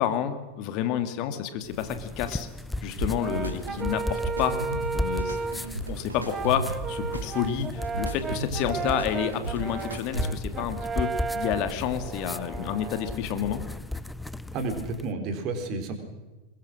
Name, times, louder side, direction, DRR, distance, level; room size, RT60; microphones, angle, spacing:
voice 1, 0.0-2.5 2.8-4.6 4.9-13.6, left 9 dB, 40° left, 9 dB, 2.2 m, -29 dB
sound 1, 1.6-15.1, left 1 dB, 5° left, 0.7 m, -36 dB
sound 2, 3.0-10.6, right 2 dB, 80° right, 2.7 m, -36 dB
Brass instrument, 3.2-5.7 6.3-13.2, right 5 dB, 20° right, 0.9 m, -34 dB
voice 2, 14.5-16.0, right 3 dB, 40° right, 5 dB, 4.1 m, -31 dB
22.5 x 21.5 x 6.3 m, 1.2 s
figure-of-eight pair, 90°, 0 cm